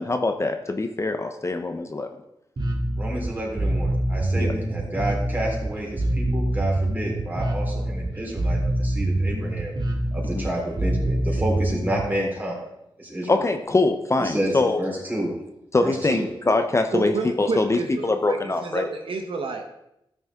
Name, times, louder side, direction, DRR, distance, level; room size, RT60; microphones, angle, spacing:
voice 1, 0.0-2.1 4.3-4.5 10.2-10.4 13.3-14.8 15.7-18.9, left 2 dB, 30° left, 6 dB, 0.8 m, -23 dB
Bass guitar, 2.6-12.0, right 1 dB, 50° right, 2.1 m, -25 dB
voice 2, 3.0-9.7 10.1-12.7 13.0-13.4 14.2-15.4 15.8-16.3, right 1 dB, 20° right, -2 dB, 3.9 m, -30 dB
voice 3, 16.9-19.7, right 3 dB, 70° right, 4 dB, 1.1 m, -30 dB
13.0 x 6.5 x 3.7 m, 0.83 s
cardioid pair, 65°, 9 cm